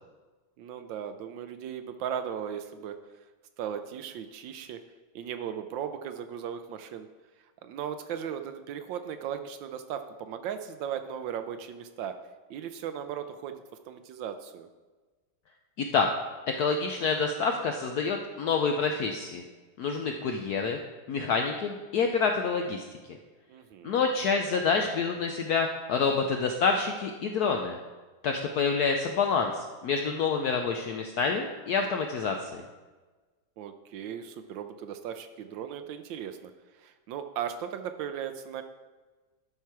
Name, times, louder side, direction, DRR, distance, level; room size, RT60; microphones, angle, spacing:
voice 1, 0.6-2.9 3.6-4.8 5.1-7.1 7.6-12.1 12.5-13.6 13.9-14.7 23.5-24.1 33.6-36.5 36.8-38.6, right 8 dB, 75° right, 9 dB, 1.2 m, -37 dB
voice 2, 15.8-16.1 16.6-19.4 19.8-20.8 21.1-22.8 23.8-27.8 28.2-32.6, left 5 dB, 75° left, 4 dB, 0.9 m, -27 dB
11.5 x 4.5 x 4.7 m, 1.3 s
omnidirectional pair, 2.2 m